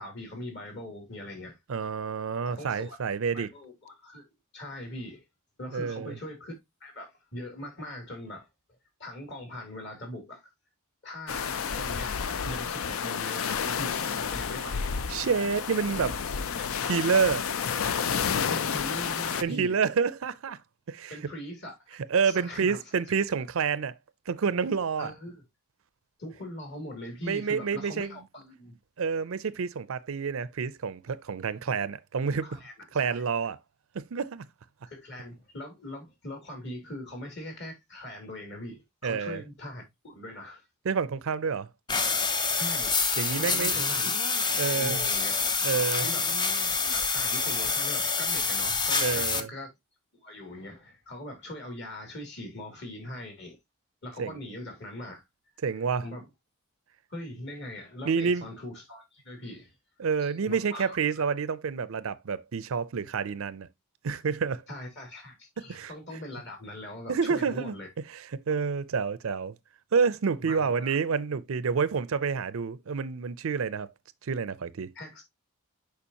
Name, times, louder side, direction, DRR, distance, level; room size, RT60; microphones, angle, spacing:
voice 1, 0.0-1.6 2.4-3.0 3.3-4.2 4.5-5.2 5.6-6.5 6.8-8.5 9.0-10.5 11.0-12.2 12.4-14.9 15.9-16.0 16.3-16.7 18.4-19.8 21.1-22.0 22.2-22.8 25.0-25.4 26.2-28.8 32.3-33.2 34.9-40.6 42.5-43.0 43.4-44.1 44.4-45.4 46.0-46.4 46.7-49.7 50.2-53.6 54.0-55.2 56.0-56.3 57.1-59.7 60.2-61.3 64.7-67.9 70.4-71.0 74.9-75.2, left 1 dB, 50° left, 2.8 m, -41 dB
voice 2, 1.7-3.5 5.7-6.2 15.1-16.1 16.8-17.5 19.4-20.6 20.9-21.1 22.1-24.0 24.3-25.1 27.2-28.1 29.0-32.6 32.9-33.6 33.9-34.4 39.0-39.4 40.8-41.7 43.2-43.8 44.5-45.0 45.6-46.1 49.0-49.5 54.2-54.4 55.6-56.0 58.1-58.5 60.0-63.7 64.0-64.6 65.7-65.9 67.1-67.8 68.1-69.6 69.9-73.9 74.2-74.9, right 5 dB, 65° right, 0.5 m, -28 dB
sound 1, 11.3-19.4, left 7 dB, 70° left, 0.5 m, -30 dB
Long Breath Concentrated, 41.9-49.4, left 4 dB, 20° left, 0.5 m, -27 dB
6.9 x 5.1 x 2.8 m
head